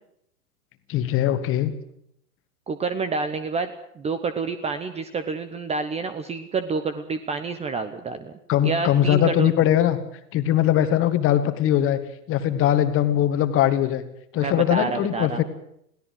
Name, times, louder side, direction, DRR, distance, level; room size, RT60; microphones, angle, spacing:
voice 1, 0.9-1.7 8.5-10.0 10.3-12.0 12.3-14.0 14.3-15.4, left 11 dB, 25° left, 10 dB, 1.9 m, -21 dB
voice 2, 2.7-3.7 4.0-8.3 8.6-9.5 14.3-15.4, right 4 dB, 15° right, 11 dB, 1.0 m, -28 dB
22.0 x 16.5 x 7.8 m, 0.73 s
figure-of-eight pair, 105°, 47 cm